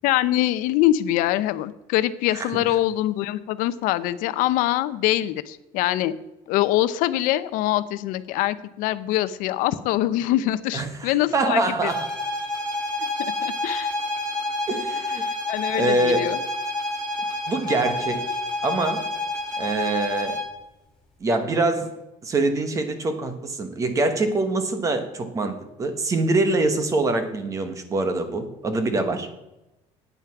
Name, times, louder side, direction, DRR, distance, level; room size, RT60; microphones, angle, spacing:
voice 1, 0.0-6.1 6.5-11.9 13.2-13.9 15.2-16.4, left 14 dB, 85° left, 14 dB, 0.6 m, -24 dB
voice 2, 10.7-12.1 14.7-15.2 15.7-16.3 17.5-18.3 18.6-19.1 19.6-20.4 21.2-21.9 22.2-29.3, right 2 dB, 25° right, 8 dB, 1.2 m, -24 dB
sound 1, 11.8-20.6, left 2 dB, 5° left, 2.3 m, -28 dB
9.3 x 9.2 x 5.9 m, 0.95 s
cardioid pair, 170°, 14 cm